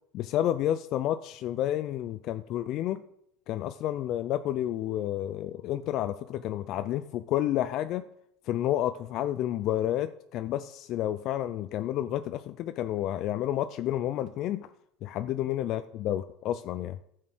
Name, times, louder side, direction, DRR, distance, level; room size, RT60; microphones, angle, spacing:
voice 1, 0.1-3.0 3.5-8.1 8.5-14.7 15.0-17.0, left 12 dB, 55° left, 11 dB, 0.4 m, -30 dB
11.0 x 6.5 x 6.1 m, 0.75 s
supercardioid pair, 120°, 0 cm